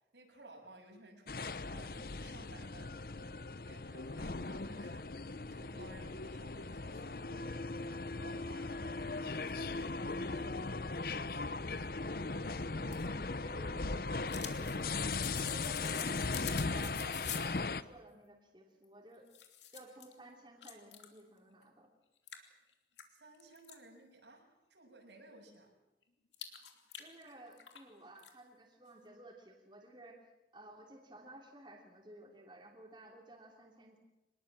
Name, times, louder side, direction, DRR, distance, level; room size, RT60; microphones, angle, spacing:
voice 1, 0.1-5.1 5.5-10.7 23.1-25.7, right 2 dB, 85° right, 1 dB, 7.0 m, -57 dB
sound 1, 1.3-17.8, left 3 dB, 55° left, 0.8 m, -38 dB
voice 2, 12.0-19.3 19.7-21.9 27.0-34.0, right 1 dB, 25° right, 0 dB, 3.1 m, -55 dB
sound 2, 12.7-17.6 18.8-18.9 19.3-20.1 20.6-21.2 21.6-21.7 22.3-23.8 26.3-27.9 28.2-28.3, left 10 dB, 90° left, 2.9 m, -47 dB
25.5 x 20.5 x 7.6 m, 0.95 s
head